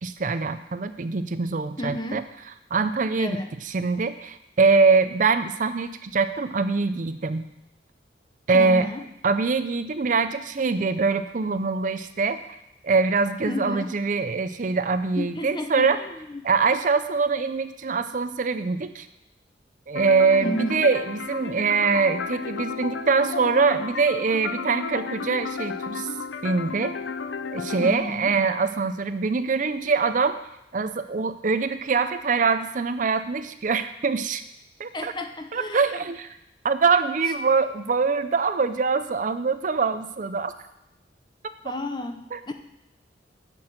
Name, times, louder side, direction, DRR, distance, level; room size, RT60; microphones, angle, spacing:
voice 1, 0.0-2.2 2.7-7.5 8.5-8.9 9.2-12.4 12.8-16.0 16.4-19.1 19.9-26.1 26.4-26.9 27.5-30.4 30.7-34.4 34.8-35.1 35.5-36.4 36.6-40.5 42.3-42.4, right 4 dB, 45° right, 11 dB, 0.5 m, -23 dB
voice 2, 1.8-2.2 3.2-3.5 8.5-9.0 13.4-13.9 15.2-16.4 20.4-20.8 27.8-28.3 34.9-35.8 41.6-42.5, left 1 dB, 25° left, 7 dB, 0.7 m, -32 dB
sound 1, 20.0-28.0, left 5 dB, 90° left, 0.6 m, -33 dB
9.6 x 6.2 x 7.8 m, 0.86 s
head